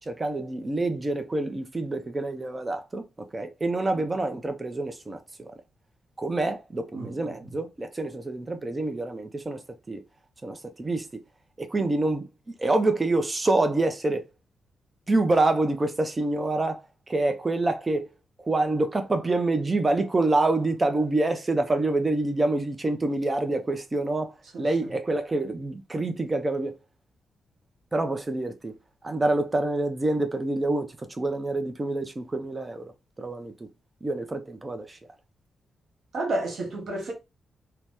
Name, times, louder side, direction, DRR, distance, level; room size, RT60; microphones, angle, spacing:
voice 1, 0.1-5.5 6.2-9.6 9.9-10.0 10.4-11.2 11.6-14.2 15.1-18.1 18.4-26.7 27.9-28.8 29.0-32.9 33.2-33.7 34.0-35.0, right 2 dB, 20° right, 0.4 m, -27 dB
voice 2, 6.9-7.5 24.5-24.9 36.1-37.1, right 2 dB, 55° right, 0.9 m, -32 dB
2.8 x 2.0 x 3.4 m
wide cardioid pair, 155°, 0 cm